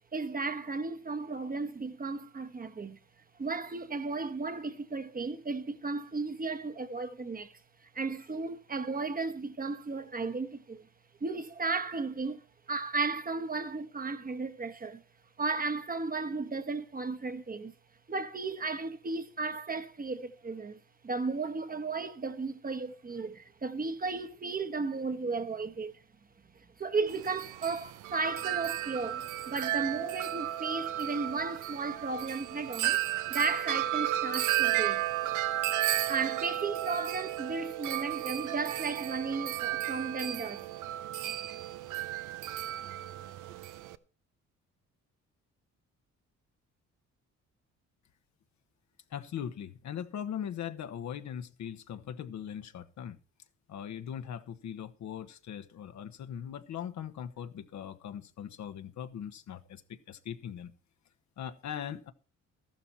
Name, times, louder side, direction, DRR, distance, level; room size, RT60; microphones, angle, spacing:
voice 1, 0.1-3.0 3.4-7.6 7.9-10.9 11.2-12.4 12.7-15.0 15.4-17.7 18.1-20.8 21.0-25.9 26.8-33.0 33.3-35.0 36.1-40.6, right 4 dB, 30° right, 1.2 m, -34 dB
Wind chime, 27.1-43.9, right 14 dB, 85° right, 0.8 m, -33 dB
voice 2, 49.1-53.2 53.7-60.7 61.4-62.1, left 9 dB, 65° left, 1.3 m, -40 dB
13.5 x 12.0 x 4.3 m
cardioid pair, 90°, 30 cm